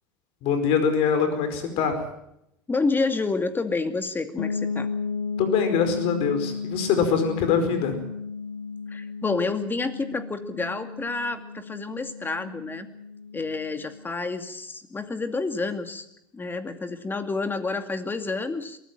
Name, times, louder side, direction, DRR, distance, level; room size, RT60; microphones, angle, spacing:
voice 1, 0.4-2.0 5.4-8.0, left 6 dB, 60° left, 9 dB, 4.9 m, -23 dB
voice 2, 2.7-4.9 8.9-12.9 13.3-16.1 16.3-18.8, left 3 dB, 20° left, 9 dB, 2.4 m, -29 dB
sound 1, 4.4-14.1, left 5 dB, 80° left, 1.4 m, -34 dB
23.0 x 15.0 x 9.1 m, 0.79 s
hypercardioid pair, 85°, 11 cm